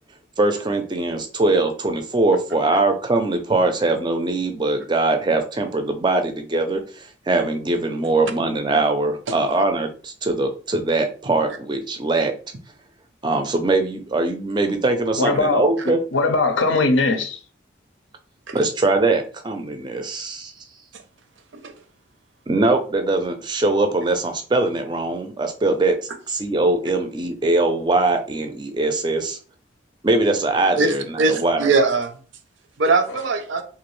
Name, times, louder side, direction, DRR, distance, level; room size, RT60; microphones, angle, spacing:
voice 1, 0.4-12.3 13.2-16.0 18.5-20.5 22.5-25.9 26.3-29.4 30.0-31.7, right 2 dB, 25° right, 0.4 m, -21 dB
voice 2, 15.2-17.4, left 3 dB, 75° left, 0.5 m, -20 dB
voice 3, 30.8-32.1 32.8-33.6, right 3 dB, 75° right, 0.5 m, -21 dB
2.9 x 2.4 x 3.1 m
head